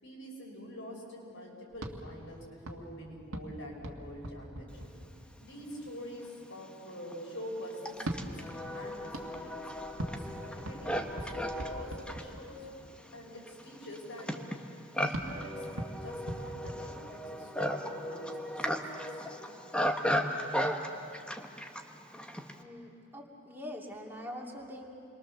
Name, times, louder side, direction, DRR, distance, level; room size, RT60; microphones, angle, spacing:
voice 1, 0.0-4.8 5.4-8.4 8.7-9.6 10.0-12.7 13.1-14.5 15.0-18.6 18.9-19.2, equal, 70° left, -1 dB, 6.0 m, -45 dB
sound 1, 1.7-5.6 7.9-12.8 15.1-17.6, right 1 dB, 90° right, 1.8 m, -42 dB
Livestock farm animals working animals, 5.9-6.0 6.7-22.6, equal, 5° left, 1.1 m, -36 dB
voice 2, 22.5-24.9, left 1 dB, 10° right, -2 dB, 2.8 m, -44 dB
28.5 x 23.0 x 7.0 m, 2.5 s
head